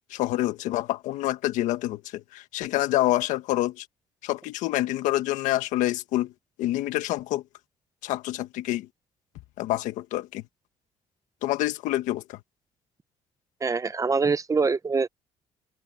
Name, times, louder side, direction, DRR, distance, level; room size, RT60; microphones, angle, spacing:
voice 1, 0.1-3.9 4.2-6.3 6.6-7.4 8.0-8.9 9.6-10.4 11.4-12.4, left 15 dB, 85° left, 1.5 m, -27 dB
voice 2, 13.6-15.1, right 4 dB, 25° right, 0.9 m, -24 dB
cardioid pair, 90°, 13 cm